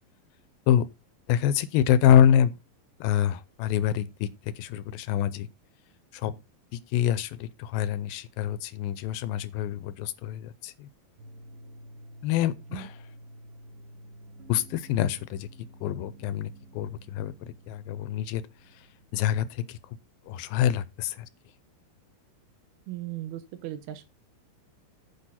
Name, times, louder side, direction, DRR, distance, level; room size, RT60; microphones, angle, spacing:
voice 1, 1.3-2.5 3.0-5.5 6.1-6.4 6.7-10.9 12.2-13.0 14.5-15.5 15.8-18.4 18.7-18.9 19.1-19.8 20.3-21.3, left 10 dB, 80° left, 2.3 m, -26 dB
sound 1, 11.2-19.9, right 1 dB, 60° right, 4.1 m, -50 dB
voice 2, 22.9-24.1, right 13 dB, 80° right, 3.1 m, -37 dB
10.0 x 6.6 x 4.2 m
omnidirectional pair, 4.4 m